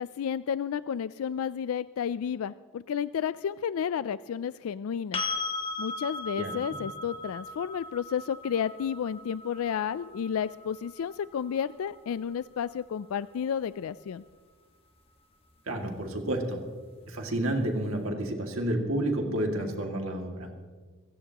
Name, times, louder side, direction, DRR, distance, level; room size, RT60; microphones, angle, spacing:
voice 1, 0.0-5.2 5.8-14.2, left 8 dB, 85° left, 16 dB, 0.3 m, -32 dB
sound 1, 5.1-13.0 15.8-15.9, left 2 dB, 25° left, 1.6 m, -38 dB
voice 2, 15.7-16.6 17.1-20.5, right 1 dB, 75° right, 2 dB, 2.2 m, -30 dB
28.0 x 16.0 x 2.9 m, 1.5 s
head